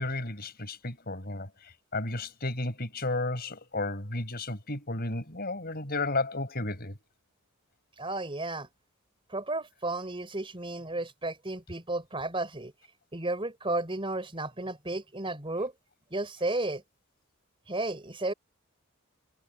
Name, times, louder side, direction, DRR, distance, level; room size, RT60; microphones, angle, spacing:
voice 1, 0.0-7.0, left 2 dB, 45° left, 6.0 m, -33 dB
voice 2, 8.0-8.7 9.3-12.7 13.1-15.7 16.1-16.8 17.7-18.3, right 2 dB, 25° right, 3.9 m, -33 dB
head